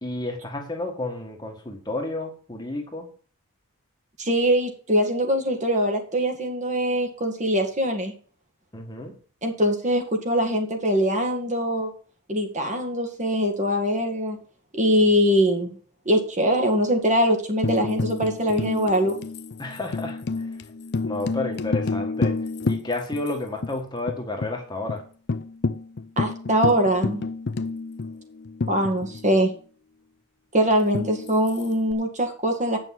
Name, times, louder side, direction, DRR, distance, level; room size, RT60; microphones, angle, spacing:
voice 1, 0.0-3.1 8.7-9.1 19.6-20.2 21.0-22.3 22.6-25.0, left 2 dB, 20° left, 2 dB, 1.6 m, -31 dB
voice 2, 4.2-8.1 9.4-11.9 12.3-14.4 14.7-15.8 16.1-19.1 26.2-27.2 28.7-29.5 30.5-32.8, equal, 30° right, 3 dB, 2.0 m, -22 dB
Tambourine, 17.6-23.3 23.6-23.7 24.1-24.5 24.9-25.0 25.3-29.4 30.9-31.9, left 3 dB, 50° left, 0.5 m, -29 dB
9.0 x 6.2 x 7.6 m, 0.42 s
head